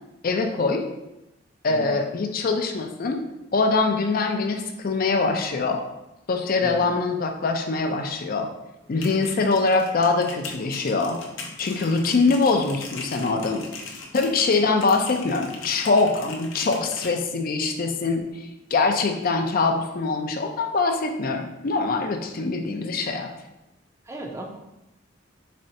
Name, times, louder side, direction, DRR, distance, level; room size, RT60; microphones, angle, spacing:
voice 1, 0.2-0.8 1.6-3.2 3.5-5.8 6.3-8.5 8.9-11.2 11.6-13.6 14.1-23.3, left 3 dB, 50° left, 4 dB, 0.4 m, -23 dB
sound 1, 8.8-17.1, left 4 dB, 90° left, 0.6 m, -40 dB
voice 2, 24.1-24.4, right 1 dB, 15° right, 2 dB, 0.5 m, -36 dB
4.2 x 3.2 x 2.7 m, 0.92 s
head